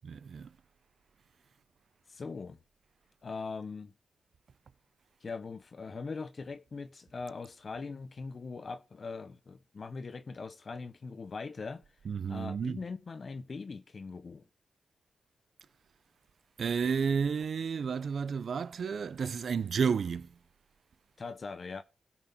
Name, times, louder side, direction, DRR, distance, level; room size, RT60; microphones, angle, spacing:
voice 1, 0.0-0.5 12.1-12.8 16.6-20.3, right 6 dB, 60° right, 0.5 m, -31 dB
voice 2, 2.1-2.6 3.2-3.9 5.2-11.8 12.3-14.4 21.2-21.8, left 4 dB, 45° left, 0.9 m, -41 dB
17.0 x 6.1 x 3.6 m
wide cardioid pair, 105°, 0 cm